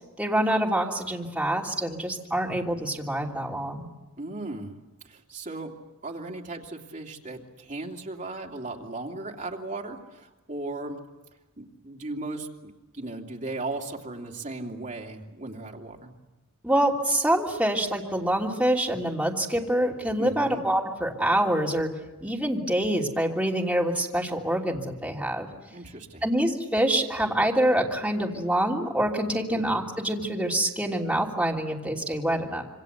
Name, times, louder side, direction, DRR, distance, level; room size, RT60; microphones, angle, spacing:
voice 1, 0.2-3.8 16.6-21.9 22.2-25.5 26.2-32.6, right 1 dB, 5° right, -2 dB, 3.1 m, -26 dB
voice 2, 4.2-4.8 5.0-5.7 6.0-11.0 11.6-16.1 20.2-20.6 25.7-26.3 29.5-29.6, right 2 dB, 35° right, 0 dB, 2.8 m, -37 dB
27.0 x 25.0 x 8.2 m, 1.1 s
head